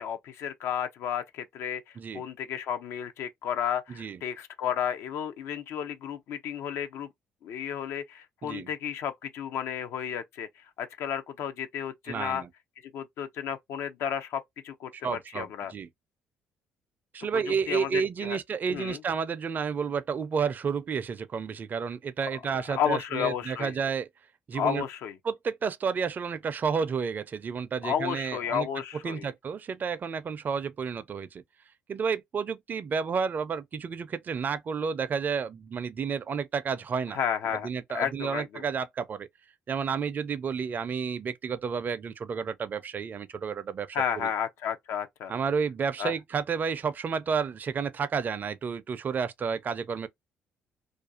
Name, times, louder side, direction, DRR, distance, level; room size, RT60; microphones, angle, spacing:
voice 1, 0.0-7.1 7.4-12.4 12.9-15.7 17.7-18.4 18.7-19.0 22.6-23.7 24.5-25.2 27.8-29.3 37.1-38.6 43.9-45.3 46.0-46.1, left 8 dB, 70° left, 0.5 m, -32 dB
voice 2, 12.1-12.5 14.9-15.9 17.1-24.1 24.5-24.8 25.2-28.7 29.0-31.4 31.9-37.2 37.6-39.3 39.7-44.3 45.3-50.1, right 6 dB, 40° right, 0.4 m, -31 dB
2.5 x 2.3 x 2.5 m
supercardioid pair, 60°, 5 cm